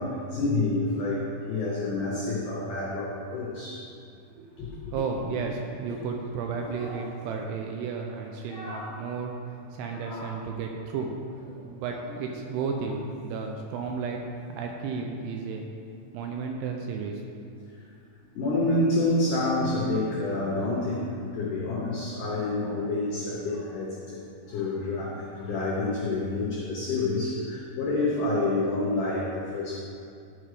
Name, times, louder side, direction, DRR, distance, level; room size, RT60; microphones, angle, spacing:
voice 1, 0.0-3.8 4.6-4.9 5.9-6.0 6.8-7.0 8.5-9.0 10.0-10.4 12.1-12.2 18.3-29.8, left 2 dB, 85° left, -4 dB, 1.8 m, -28 dB
voice 2, 4.4-11.2 11.6-14.2 14.5-15.6 16.1-17.2, right 5 dB, 85° right, 2 dB, 2.5 m, -33 dB
11.5 x 4.8 x 4.9 m, 2.4 s
omnidirectional pair, 5.2 m